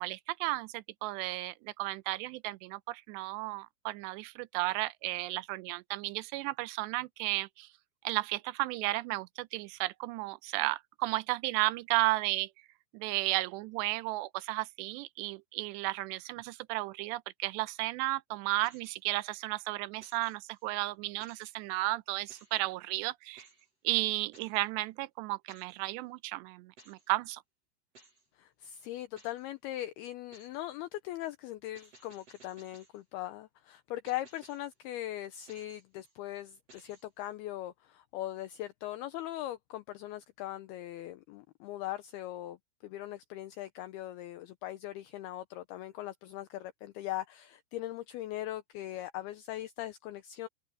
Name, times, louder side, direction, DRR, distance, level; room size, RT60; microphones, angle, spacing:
voice 1, 0.0-7.7 8.0-12.5 12.9-23.5 23.8-27.4, right 19 dB, 80° right, 2.7 m, -33 dB
sound 1, 18.6-19.3 20.0-20.7 21.2-21.8 22.3-22.6 23.4-23.7 24.3-24.7 25.5-25.8 26.8-27.1 28.0-28.3 29.2-29.5 30.3-30.6 31.8-33.0 34.1-34.7 35.5-36.2 36.7-37.3, right 2 dB, 35° right, 7.1 m, -60 dB
voice 2, 28.4-42.6 42.8-50.5, left 14 dB, 80° left, 2.3 m, -40 dB
open air
omnidirectional pair, 5.2 m